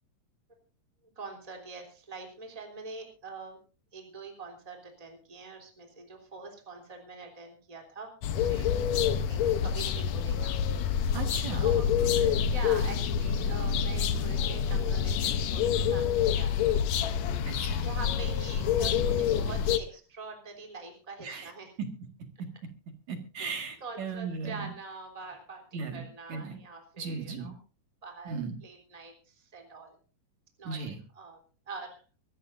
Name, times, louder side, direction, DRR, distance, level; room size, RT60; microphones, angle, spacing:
voice 1, 1.1-3.6 3.9-8.7 9.1-10.5 11.5-16.8 17.8-21.7 23.4-23.5 23.8-27.5 28.0-29.9 30.6-30.8 31.1-32.0, right 3 dB, 10° right, 2 dB, 2.9 m, -44 dB
sound 1, 8.2-19.8, left 8 dB, 90° left, 1.5 m, -27 dB
voice 2, 11.1-11.8 17.5-17.9 21.2-21.5 21.8-21.9 23.1-24.7 25.7-26.0 26.3-26.6 27.0-27.5 28.3-28.5 30.6-31.0, right 5 dB, 55° right, 5 dB, 2.8 m, -36 dB
24.5 x 14.5 x 2.6 m, 0.37 s
omnidirectional pair, 4.5 m